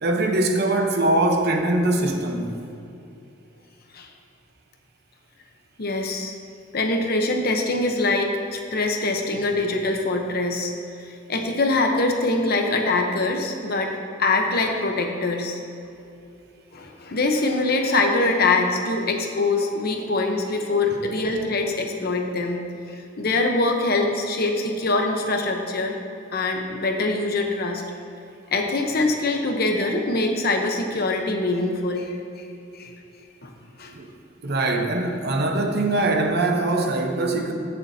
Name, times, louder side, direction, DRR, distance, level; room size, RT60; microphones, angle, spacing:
voice 1, 0.0-2.6 33.9-34.1 34.4-37.5, right 2 dB, 55° right, 3 dB, 0.9 m, -22 dB
voice 2, 5.8-6.4 6.7-10.7 11.3-15.6 16.7-22.6 22.9-26.0 26.3-27.8 28.5-32.2 32.7-32.9 33.4-33.5 33.8-33.9, left 2 dB, 50° left, 3 dB, 0.9 m, -23 dB
15.5 x 6.8 x 2.8 m, 2.7 s
head